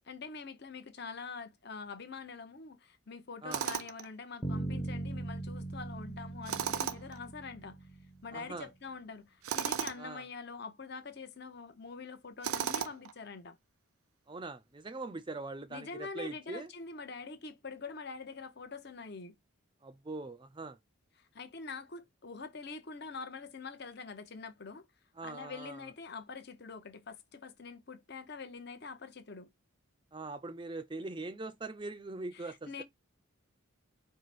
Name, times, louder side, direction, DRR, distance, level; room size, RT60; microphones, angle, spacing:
voice 1, 0.1-7.8 8.2-13.6 15.7-19.4 21.3-24.9 25.2-29.5 32.3-32.8, left 4 dB, 50° left, 0.8 m, -45 dB
Tools, 3.5-4.1 6.4-7.2 9.4-10.0 12.4-13.1, right 8 dB, 85° right, 0.5 m, -34 dB
Bass guitar, 4.4-8.4, right 2 dB, 10° left, 0.7 m, -40 dB
voice 2, 8.3-8.7 10.0-10.2 14.3-16.7 19.8-20.8 25.2-25.9 30.1-32.8, right 3 dB, 20° right, 0.4 m, -42 dB
4.8 x 2.1 x 4.1 m
head